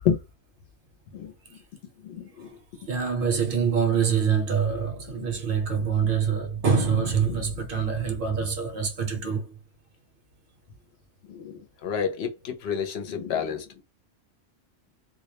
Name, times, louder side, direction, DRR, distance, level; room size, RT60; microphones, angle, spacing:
voice 1, 2.0-2.6 3.9-4.0 5.1-5.3 6.0-6.3 7.2-7.6 9.2-9.4 11.2-13.8, left 7 dB, 70° left, 0.8 m, -31 dB
voice 2, 2.9-9.4, right 6 dB, 55° right, 0.8 m, -25 dB
2.2 x 2.1 x 2.8 m
omnidirectional pair, 1.1 m